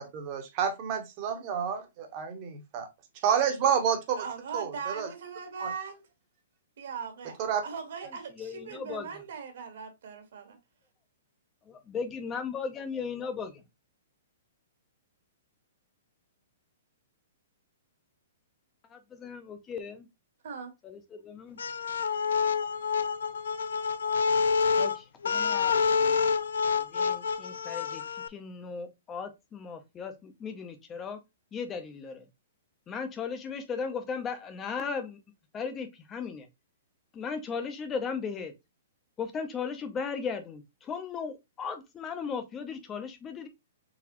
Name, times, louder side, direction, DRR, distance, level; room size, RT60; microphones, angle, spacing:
voice 1, 0.1-2.9 3.2-4.2 4.5-5.1 5.6-5.7 7.4-7.6, right 8 dB, 30° right, 0.9 m, -29 dB
voice 2, 4.1-6.0 6.8-7.4 7.6-10.6 20.4-20.7, right 6 dB, 55° right, 1.5 m, -39 dB
voice 3, 8.4-9.1 11.7-13.6 18.9-20.1 20.8-21.6 24.0-24.2 24.8-26.2 26.7-31.2 31.5-32.3 32.9-35.2 35.5-36.5 37.1-38.5 39.2-43.5, left 5 dB, 15° left, 0.6 m, -37 dB
sound 1, 21.6-28.3, left 5 dB, 90° left, 0.4 m, -27 dB
3.9 x 3.6 x 2.9 m
hypercardioid pair, 170°, 0 cm